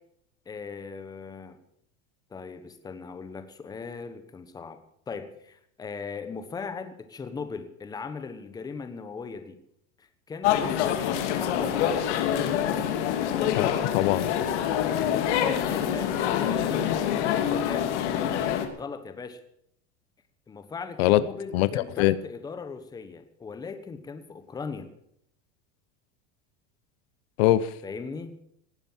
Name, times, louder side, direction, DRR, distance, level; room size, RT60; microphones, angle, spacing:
voice 1, 0.5-1.6 2.3-4.8 5.1-9.6 10.0-11.0 11.3-12.0 15.4-18.4 18.7-19.4 20.5-24.9 27.8-28.3, left 5 dB, 10° left, 10 dB, 1.2 m, -39 dB
sound 1, 10.4-18.7, left 9 dB, 80° left, 2.7 m, -26 dB
voice 2, 13.6-14.3 21.0-21.2 21.5-22.2 27.4-27.7, left 15 dB, 60° left, 16 dB, 0.9 m, -22 dB
18.5 x 10.0 x 7.3 m, 0.72 s
supercardioid pair, 170°, 34 cm